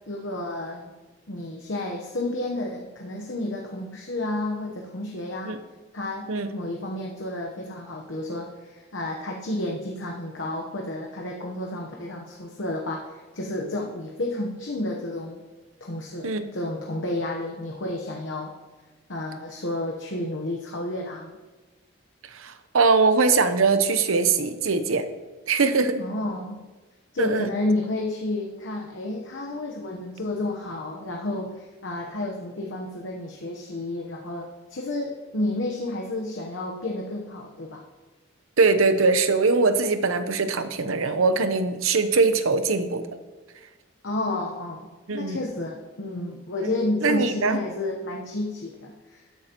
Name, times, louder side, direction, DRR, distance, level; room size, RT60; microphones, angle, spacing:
voice 1, 0.1-0.8 1.3-5.6 5.9-15.4 15.8-18.5 19.1-21.4 26.0-26.6 27.1-37.8 44.0-49.2, left 2 dB, 65° left, 0 dB, 1.0 m, -31 dB
voice 2, 22.3-25.0 25.5-26.0 27.2-27.5 38.6-43.0 45.1-45.4 47.0-47.6, right 4 dB, 85° right, 10 dB, 0.8 m, -22 dB
13.0 x 10.5 x 3.0 m, 1.2 s
head